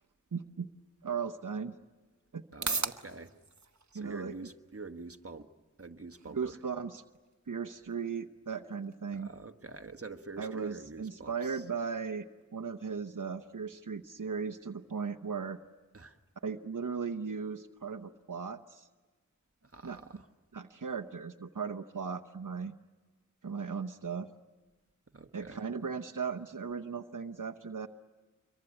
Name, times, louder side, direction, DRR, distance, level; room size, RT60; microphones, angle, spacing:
voice 1, 0.3-0.7 1.0-1.8 2.3-2.4 3.9-4.3 6.4-7.0 7.5-9.3 10.4-12.3 12.5-15.6 16.4-18.9 19.8-20.0 20.5-22.7 23.4-24.3 25.3-27.9, right 5 dB, 85° right, 0.9 m, -37 dB
sound 1, 1.1-18.1, right 4 dB, 65° right, 1.0 m, -46 dB
voice 2, 2.5-3.3 3.9-5.5 5.8-6.6 9.1-11.6 15.9-16.2 19.6-20.3 25.1-25.6, right 3 dB, 45° right, 1.3 m, -46 dB
26.0 x 23.0 x 9.9 m
wide cardioid pair, 50°, 31 cm